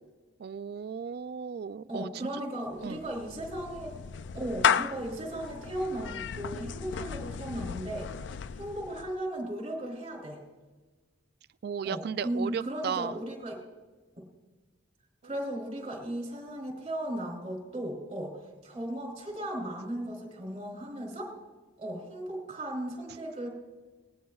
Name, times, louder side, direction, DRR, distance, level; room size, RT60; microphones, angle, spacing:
voice 1, 0.4-2.3 2.8-3.1 11.6-13.2, right 7 dB, 55° right, 16 dB, 0.3 m, -35 dB
voice 2, 1.9-4.0 4.3-8.1 8.5-10.4 11.8-13.6 15.2-18.4 18.6-21.3 21.8-23.5, right 1 dB, 35° right, 1 dB, 3.2 m, -36 dB
Clapping / Meow, 2.7-9.2, left 7 dB, 70° left, 0.4 m, -34 dB
19.0 x 18.5 x 2.4 m, 1.3 s
head